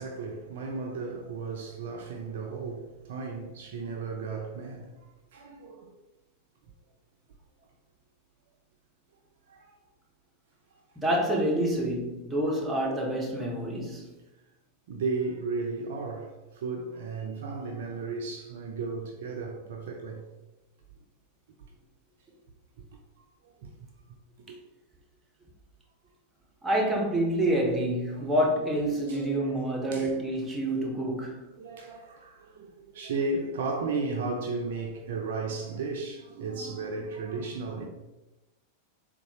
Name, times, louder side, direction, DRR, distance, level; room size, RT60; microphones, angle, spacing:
voice 1, 0.0-4.9 5.3-5.9 9.5-9.6 14.9-20.2 22.8-22.9 23.4-23.7 24.5-24.6 28.1-28.3 28.9-29.6 29.9-30.1 31.6-37.9, right 3 dB, 55° right, 0.4 m, -34 dB
voice 2, 11.0-14.1 26.6-31.5, right 1 dB, 10° right, 0.8 m, -27 dB
3.9 x 2.2 x 2.8 m
figure-of-eight pair, 90°, 0 cm